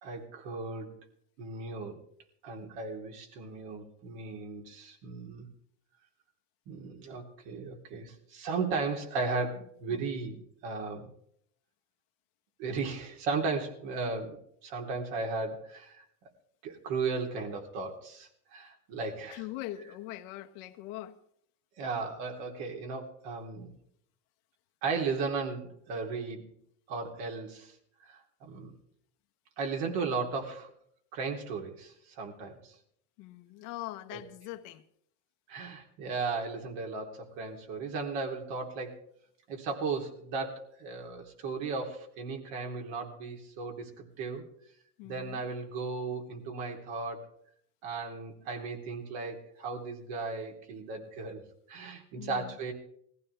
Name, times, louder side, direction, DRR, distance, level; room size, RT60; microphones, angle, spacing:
voice 1, 0.0-1.0 1.4-2.0 2.4-5.5 6.7-11.1 12.6-16.0 16.6-19.4 21.8-23.7 24.8-26.5 26.9-27.7 28.1-28.8 29.6-30.7 31.1-32.8 34.1-34.2 35.5-39.0 39.5-44.4 45.0-47.3 47.8-51.4 51.7-52.7, right 4 dB, 75° right, 2 dB, 3.5 m, -36 dB
voice 2, 19.3-21.2 33.2-34.8 45.0-45.4 52.2-52.6, left 15 dB, 75° left, 7 dB, 1.2 m, -42 dB
19.5 x 15.0 x 3.4 m, 0.67 s
cardioid pair, 125°, 46 cm